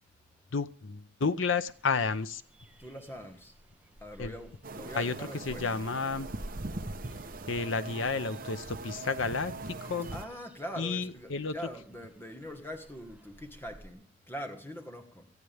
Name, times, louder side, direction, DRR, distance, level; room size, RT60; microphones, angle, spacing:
voice 1, 0.5-2.4 4.2-4.3 4.9-5.1 5.5-6.3 7.5-10.1 10.8-11.5, left 4 dB, 75° left, 0.7 m, -31 dB
sound 1, 1.7-13.9, right 1 dB, 5° right, 0.9 m, -52 dB
voice 2, 2.8-3.5 4.0-5.7 10.1-15.3, equal, 10° left, 1.5 m, -43 dB
sound 2, 4.6-10.3, right 2 dB, 45° right, 0.9 m, -41 dB
17.5 x 14.0 x 3.5 m
head